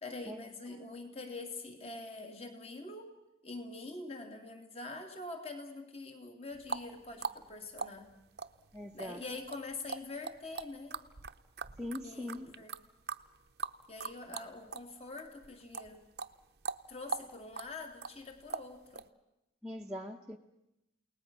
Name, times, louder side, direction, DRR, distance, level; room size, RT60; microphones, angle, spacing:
voice 1, 0.0-3.1 3.4-8.1 8.9-11.0 12.0-12.8 13.9-16.0 16.9-19.0, left 3 dB, 35° left, 4 dB, 2.6 m, -45 dB
sound 1, 6.5-14.9 15.2-19.1, right 4 dB, 60° right, 0.8 m, -41 dB
voice 2, 8.7-9.2 11.8-12.5 19.6-20.4, left 1 dB, 5° right, -2 dB, 0.9 m, -41 dB
29.5 x 19.0 x 6.1 m, 0.88 s
head